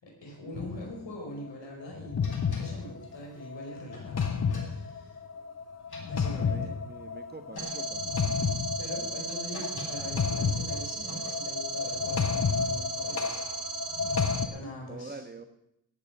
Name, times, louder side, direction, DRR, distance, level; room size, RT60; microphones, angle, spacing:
voice 1, 0.0-5.2 6.1-6.7 8.8-13.4 14.4-15.2, left 1 dB, 85° left, 0 dB, 5.1 m, -43 dB
sound 1, 0.5-1.0 1.9-14.5, left 6 dB, 35° left, 0.8 m, -31 dB
sound 2, 2.2-5.5 5.8-6.8 7.2-7.3 7.5-8.2 8.8-11.7, left 1 dB, 60° left, 3.5 m, -47 dB
voice 2, 6.2-8.0 14.9-15.4, right 3 dB, 20° right, 7 dB, 1.3 m, -45 dB
sound 3, 7.6-14.4, right 5 dB, 55° right, 1.4 m, -37 dB
18.0 x 8.5 x 6.0 m, 0.77 s
wide cardioid pair, 150°, 43 cm